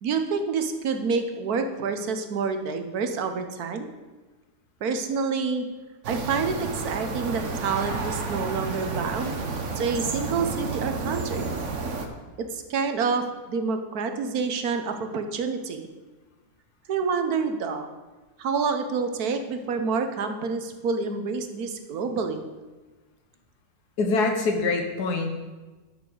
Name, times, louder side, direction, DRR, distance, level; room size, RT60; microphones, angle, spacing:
voice 1, 0.0-3.9 4.8-5.7 6.1-9.3 9.8-11.5 12.4-15.9 16.9-17.9 18.4-22.4, right 5 dB, 75° right, 7 dB, 1.4 m, -28 dB
sound 1, 6.0-12.1, right 4 dB, 55° right, 1.3 m, -31 dB
voice 2, 24.0-25.5, left 3 dB, 90° left, 4 dB, 1.6 m, -25 dB
11.0 x 5.9 x 6.2 m, 1.2 s
omnidirectional pair, 1.6 m